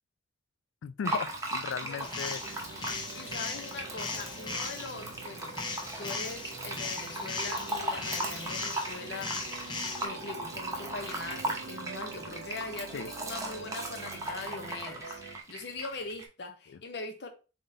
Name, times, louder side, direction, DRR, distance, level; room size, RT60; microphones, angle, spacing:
voice 1, 0.8-2.6 12.9-13.1 16.7-16.8, left 6 dB, 90° left, 0.3 m, -37 dB
Fill (with liquid), 1.0-16.2, right 1 dB, 15° right, 0.7 m, -38 dB
voice 2, 1.8-2.1 3.1-5.6 6.0-9.6 10.0-15.2 15.5-17.3, left 3 dB, 65° left, 0.7 m, -41 dB
sound 1, 2.0-10.1, left 4 dB, 25° left, 0.4 m, -39 dB
sound 2, 2.4-15.4, right 4 dB, 65° right, 0.3 m, -47 dB
3.7 x 3.6 x 2.6 m
head